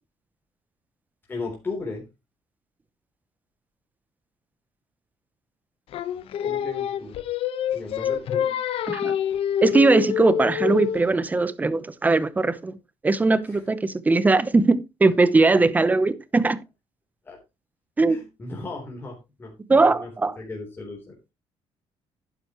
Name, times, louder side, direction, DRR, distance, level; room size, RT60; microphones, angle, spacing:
voice 1, 1.3-2.0 6.4-7.2 7.7-8.6 13.5-13.6 17.2-17.4 18.1-21.2, left 3 dB, 20° left, 3.6 m, -36 dB
Singing, 5.9-11.1, left 9 dB, 65° left, 1.1 m, -26 dB
voice 2, 9.6-12.7 13.0-16.6 18.0-18.2 19.7-20.4, right 3 dB, 15° right, 0.8 m, -20 dB
11.5 x 10.0 x 3.1 m
cardioid pair, 140°, 10 cm